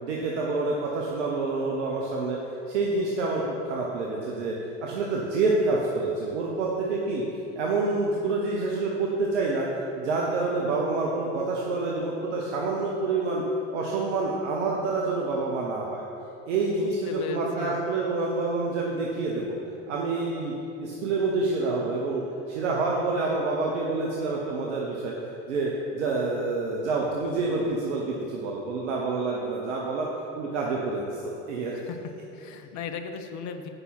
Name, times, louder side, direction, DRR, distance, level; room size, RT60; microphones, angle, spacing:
voice 1, 0.0-2.4 2.7-4.5 4.8-7.2 7.6-13.4 13.7-16.0 16.5-19.6 19.9-20.5 20.8-22.2 22.5-25.2 25.5-30.1 30.4-31.1 31.5-31.8, right 3 dB, 75° right, -2 dB, 1.0 m, -27 dB
voice 2, 16.7-17.8 31.7-32.0 32.3-33.7, left 6 dB, 50° left, 7 dB, 0.9 m, -37 dB
8.2 x 5.5 x 5.8 m, 2.9 s
hypercardioid pair, 70°, 36 cm